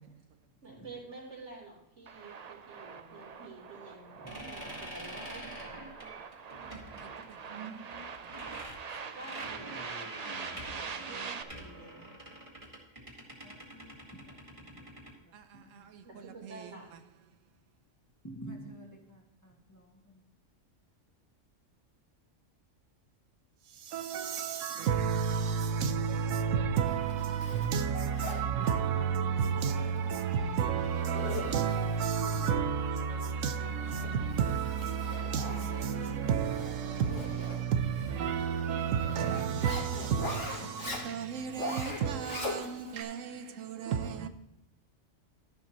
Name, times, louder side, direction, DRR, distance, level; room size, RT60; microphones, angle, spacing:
voice 1, 0.6-5.8 9.1-12.1 16.0-16.9, right 3 dB, 65° right, 4.0 m, -49 dB
sound 1, 2.1-11.4, right 6 dB, 45° right, 0.6 m, -44 dB
sound 2, 4.3-15.1, right 1 dB, 25° right, 2.3 m, -46 dB
voice 2, 7.0-7.8 8.2-8.3 15.3-16.7 23.7-44.3, right 7 dB, 90° right, 1.1 m, -32 dB
voice 3, 10.2-11.3 11.6-11.9 13.4-14.9 15.2-15.9 18.2-20.2, right 1 dB, 15° left, 1.9 m, -51 dB
Zipper (clothing), 26.8-43.0, left 2 dB, 70° left, 2.5 m, -43 dB
12.5 x 11.0 x 3.0 m
omnidirectional pair, 1.3 m